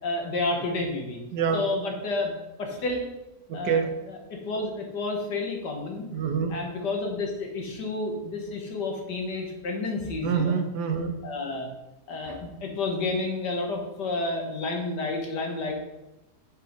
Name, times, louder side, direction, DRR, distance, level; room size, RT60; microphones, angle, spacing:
voice 1, 0.0-1.2 1.5-2.3 2.6-3.0 3.5-6.1 6.5-10.6 11.2-11.7 12.1-15.7, left 2 dB, 80° left, 1 dB, 2.1 m, -30 dB
voice 2, 1.3-1.6 3.5-3.9 6.1-6.5 10.2-11.2, right 6 dB, 80° right, 6 dB, 1.6 m, -26 dB
7.9 x 5.6 x 5.3 m, 0.94 s
omnidirectional pair, 1.8 m